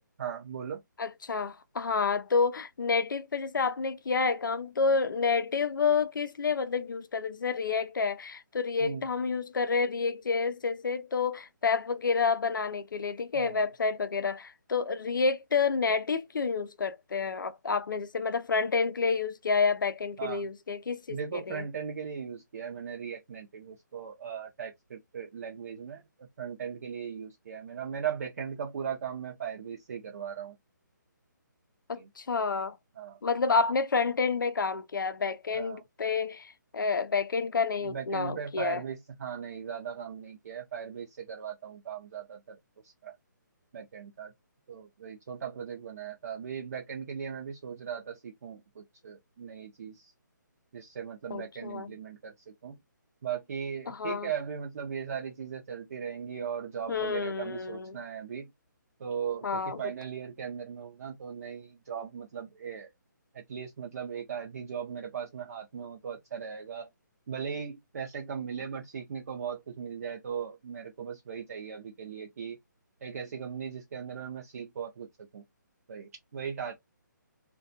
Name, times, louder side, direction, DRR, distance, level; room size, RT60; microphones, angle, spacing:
voice 1, 0.0-0.8 8.8-9.1 13.3-13.7 20.2-20.5 21.1-30.6 32.0-32.1 33.0-33.2 35.5-35.8 37.8-42.6 42.8-43.2 43.7-44.3 44.7-50.1 50.7-52.8 53.2-58.5 59.0-62.9 63.3-66.9 67.3-72.6 73.0-75.1 75.3-75.4 75.9-76.7, right 7 dB, 50° right, 0.5 m, -38 dB
voice 2, 1.0-21.2 21.5-21.6 31.9-32.8 33.2-38.8 51.3-51.9 53.9-54.3 56.9-58.0 59.4-59.8, left 5 dB, 85° left, 0.5 m, -29 dB
2.3 x 2.2 x 2.5 m
hypercardioid pair, 160°, 10 cm